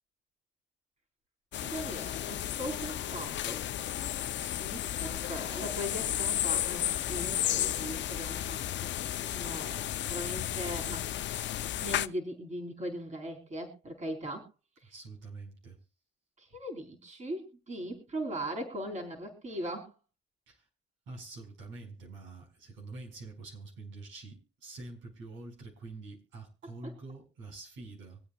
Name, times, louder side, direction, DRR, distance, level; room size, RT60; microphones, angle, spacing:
sound 1, 1.5-12.1, left 12 dB, 65° left, 0.6 m, -33 dB
voice 1, 1.6-3.7 4.6-8.6 8.9-11.1 11.8-14.5 14.8-14.9 16.4-19.9 26.6-26.9, equal, 35° right, 2 dB, 3.5 m, -39 dB
voice 2, 4.3-4.7 14.8-15.8 20.5-20.7 21.1-28.2, right 3 dB, 80° right, 2 dB, 5.2 m, -46 dB
25.0 x 8.7 x 2.4 m, 0.30 s
cardioid pair, 90°, 20 cm